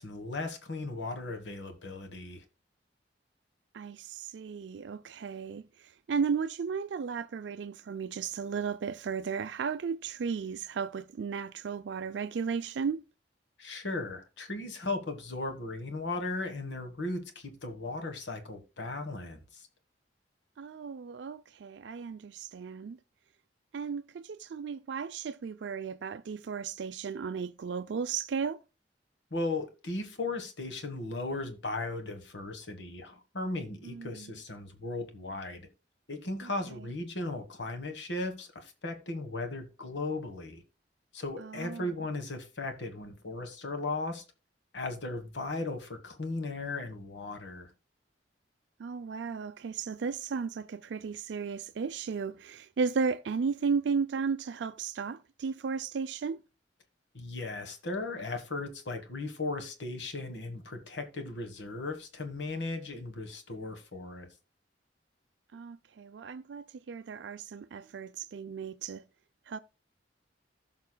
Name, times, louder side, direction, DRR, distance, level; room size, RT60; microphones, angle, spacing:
voice 1, 0.0-2.4 13.6-19.7 29.3-35.7 36.1-40.6 41.1-44.2 44.7-47.7 57.1-64.3, left 2 dB, 80° left, 1.4 m, -37 dB
voice 2, 3.7-13.0 20.6-23.0 23.7-28.6 33.8-34.3 36.4-36.9 41.4-41.9 48.8-56.4 65.5-69.0 69.5-69.6, right 5 dB, 75° right, 0.4 m, -35 dB
15.5 x 5.8 x 2.2 m
head